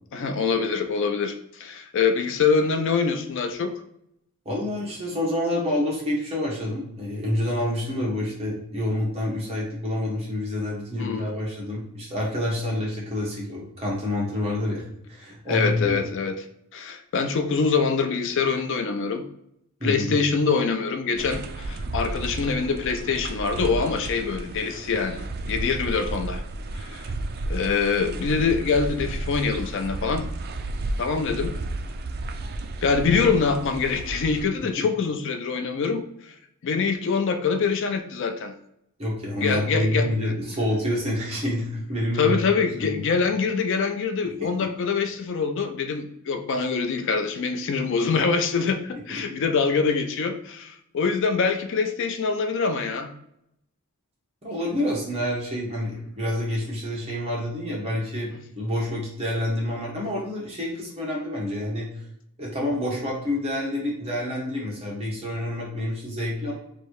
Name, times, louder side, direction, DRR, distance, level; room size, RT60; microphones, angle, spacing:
voice 1, 0.1-3.7 11.0-11.3 15.5-16.4 16.7-19.3 19.8-26.4 26.7-27.1 27.5-30.3 31.0-31.5 32.8-36.3 36.6-38.5 39.3-40.3 42.2-53.1, left 5 dB, 55° left, 6 dB, 0.4 m, -24 dB
voice 2, 4.4-14.8 15.1-16.0 19.8-20.1 34.8-34.9 39.0-42.4 42.8-43.0 44.6-44.7 54.4-61.9 62.4-66.5, left 1 dB, 30° right, -4 dB, 1.2 m, -28 dB
sound 1, 21.2-34.4, right 2 dB, 45° right, 0.4 m, -33 dB
3.1 x 2.7 x 4.5 m, 0.78 s
head